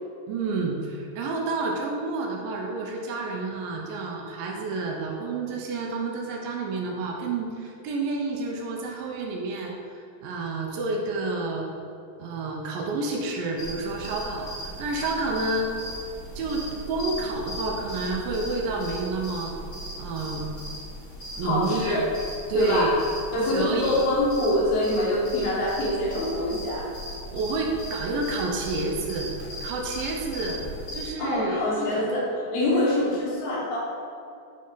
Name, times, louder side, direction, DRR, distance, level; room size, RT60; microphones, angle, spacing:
voice 1, 0.3-9.7 10.2-11.7 12.2-15.7 16.4-19.5 20.0-20.5 21.4-22.0 22.5-23.0 23.5-24.0 27.3-29.3 29.6-30.6 30.9-32.1 32.7-33.1, right 3 dB, 80° right, 0 dB, 2.3 m, -29 dB
sound 1, 13.6-31.1, equal, 55° left, 1.2 m, -38 dB
voice 2, 21.4-22.1 22.5-23.0 23.3-26.9 31.2-33.8, left 1 dB, 80° left, -4 dB, 3.1 m, -25 dB
7.3 x 4.2 x 3.9 m, 2.6 s
omnidirectional pair, 4.3 m